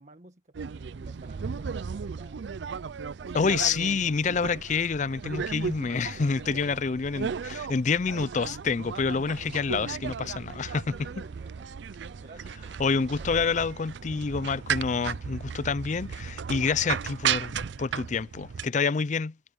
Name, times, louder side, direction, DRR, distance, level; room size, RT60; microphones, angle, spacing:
voice 1, 0.0-2.4 3.2-3.5 6.5-6.8 11.2-11.7 12.2-13.7, right 2 dB, 40° right, 1.6 m, -52 dB
sound 1, 0.5-18.7, right 7 dB, 70° right, 0.4 m, -35 dB
voice 2, 3.3-11.2 12.8-19.3, left 5 dB, 40° left, 0.4 m, -28 dB
head